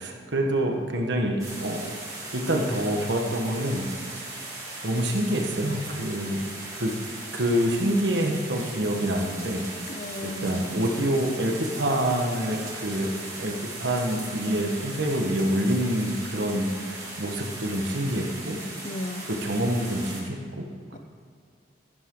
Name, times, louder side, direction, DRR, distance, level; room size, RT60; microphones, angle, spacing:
voice 1, 0.0-1.3 1.6-1.9 2.3-3.8 4.1-4.2 4.8-6.4 6.7-6.9 7.3-9.6 10.2-13.1 13.4-18.6 19.3-20.6, right 1 dB, 80° right, 1 dB, 1.5 m, -26 dB
sound 1, 1.4-20.2, right 2 dB, 20° right, 2.2 m, -38 dB
voice 2, 9.9-10.7 18.8-19.3 20.9-21.0, left 1 dB, 40° left, 10 dB, 0.5 m, -35 dB
13.5 x 11.0 x 3.9 m, 2.2 s
head